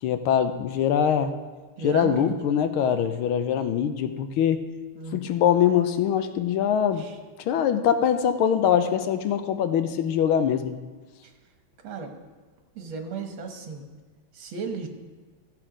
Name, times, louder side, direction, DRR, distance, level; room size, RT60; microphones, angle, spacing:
voice 1, 0.0-1.3 1.8-4.6 5.1-7.1 7.4-10.8, left 8 dB, 80° left, 9 dB, 1.5 m, -23 dB
voice 2, 1.8-2.4 5.0-5.2 7.0-7.1 11.8-12.1 12.8-13.8 14.3-14.9, right 4 dB, 70° right, 4 dB, 2.0 m, -34 dB
14.5 x 7.6 x 5.0 m, 1.3 s
omnidirectional pair, 2.4 m